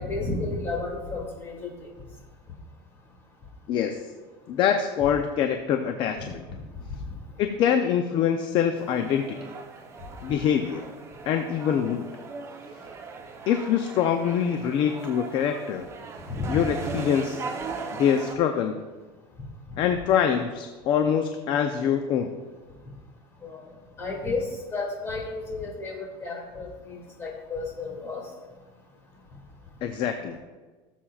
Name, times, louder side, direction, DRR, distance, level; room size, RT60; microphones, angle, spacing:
voice 1, 0.0-1.9 16.3-16.6 19.7-19.8 23.4-23.6 24.0-28.2, left 3 dB, 20° left, -1 dB, 2.4 m, -32 dB
voice 2, 3.7-4.0 4.5-6.5 7.4-9.5 10.2-10.9 11.3-12.1 13.5-15.9 16.5-17.4 18.0-18.8 19.8-22.3 29.8-30.4, left 8 dB, 40° left, 6 dB, 0.6 m, -24 dB
sound 1, 8.8-18.3, right 4 dB, 20° right, 0.8 m, -38 dB
17.0 x 7.3 x 2.4 m, 1.3 s
supercardioid pair, 155°, 12 cm